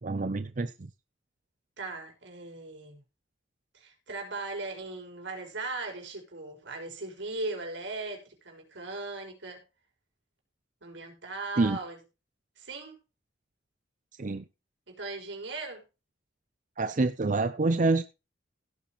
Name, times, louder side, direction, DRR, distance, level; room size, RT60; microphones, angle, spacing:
voice 1, 0.0-0.9 11.6-11.8 14.2-14.4 16.8-18.0, right 3 dB, 45° right, 0.6 m, -27 dB
voice 2, 1.8-3.0 3.7-9.6 10.8-12.0 12.6-13.0 14.9-15.8, right 3 dB, 75° right, 5.4 m, -38 dB
17.0 x 8.4 x 3.0 m
head